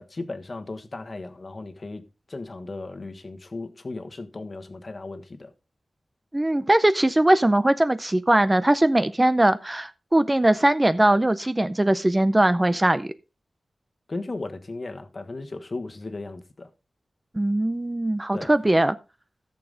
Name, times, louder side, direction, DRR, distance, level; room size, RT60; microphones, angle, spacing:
voice 1, 0.0-2.0 2.3-5.5 14.1-16.7 18.3-18.5, left 3 dB, 40° left, 1.3 m, -36 dB
voice 2, 6.3-13.1 17.3-19.0, right 1 dB, 15° right, 0.5 m, -20 dB
14.5 x 7.0 x 3.9 m
wide cardioid pair, 110°, 0 cm